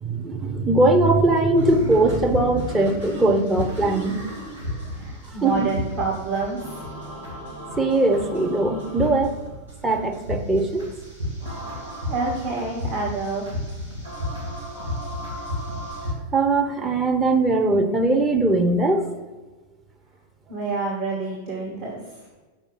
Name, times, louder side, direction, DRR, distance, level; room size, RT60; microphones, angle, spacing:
voice 1, 0.0-4.2 5.4-5.7 7.8-9.4 9.8-10.9 11.6-11.7 14.8-14.9 15.3-15.4 16.3-19.1, right 2 dB, 15° right, 3 dB, 1.0 m, -20 dB
sound 1, 1.6-16.1, left 1 dB, 75° right, 2.8 m, -33 dB
voice 2, 4.9-6.8 12.1-13.4 20.5-22.0, right 3 dB, 45° right, -4 dB, 2.1 m, -28 dB
7.1 x 5.4 x 7.4 m, 1.3 s
figure-of-eight pair, 90°, 0 cm